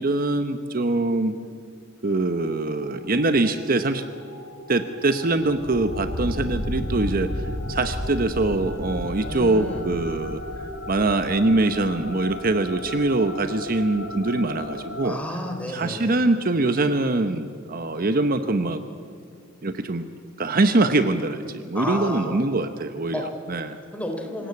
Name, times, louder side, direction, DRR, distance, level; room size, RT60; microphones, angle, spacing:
voice 1, 0.0-1.4 2.0-4.0 4.7-7.3 7.7-10.4 10.9-15.2 15.7-18.8 19.6-20.1 20.4-23.8, right 2 dB, 45° right, 9 dB, 0.9 m, -23 dB
sound 1, 2.1-15.2, left 1 dB, 90° left, 3.0 m, -34 dB
voice 2, 9.2-9.8 15.0-16.2 21.7-22.4 23.1-23.2 23.9-24.5, left 1 dB, 5° left, 2 dB, 3.4 m, -31 dB
26.0 x 17.5 x 8.4 m, 2.3 s
head